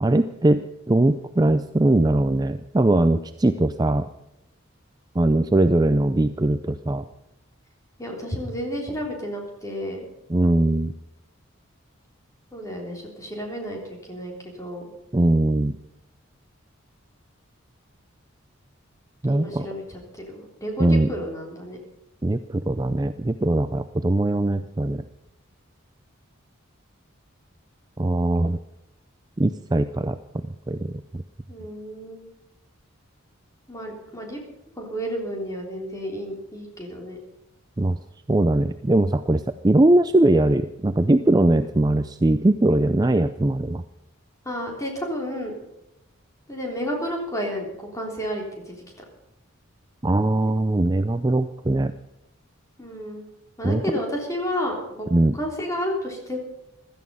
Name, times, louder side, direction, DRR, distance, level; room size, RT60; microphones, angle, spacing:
voice 1, 0.0-4.1 5.2-7.0 10.3-10.9 15.1-15.8 19.2-19.7 20.8-21.1 22.2-25.0 28.0-28.6 29.4-31.2 37.8-38.0 38.3-43.8 50.0-51.9 53.6-53.8 55.1-55.4, right 1 dB, 20° right, 10 dB, 0.4 m, -21 dB
voice 2, 8.0-10.1 12.5-14.3 14.6-14.9 19.3-21.8 31.5-32.3 33.7-34.4 34.8-37.2 44.5-45.6 46.5-48.8 52.8-53.2 53.6-55.1 55.4-56.4, equal, 15° left, 0 dB, 3.5 m, -31 dB
16.0 x 13.5 x 5.5 m, 0.87 s
head